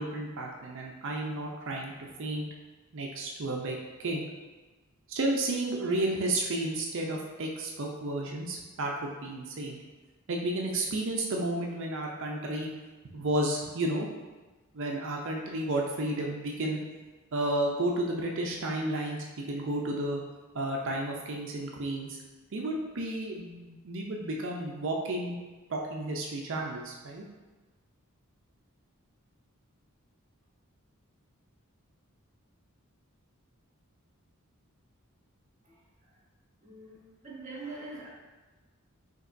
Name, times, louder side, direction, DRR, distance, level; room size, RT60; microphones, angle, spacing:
voice 1, 0.0-2.4 2.9-3.8 4.0-4.2 5.1-9.8 10.3-12.7 13.1-14.1 14.7-16.8 17.3-20.2 20.5-22.2 22.5-25.4 25.7-27.2, right 1 dB, 60° right, 0 dB, 0.5 m, -32 dB
voice 2, 36.6-38.1, right 3 dB, 35° right, -4 dB, 1.1 m, -43 dB
5.3 x 2.9 x 2.6 m, 1.2 s
head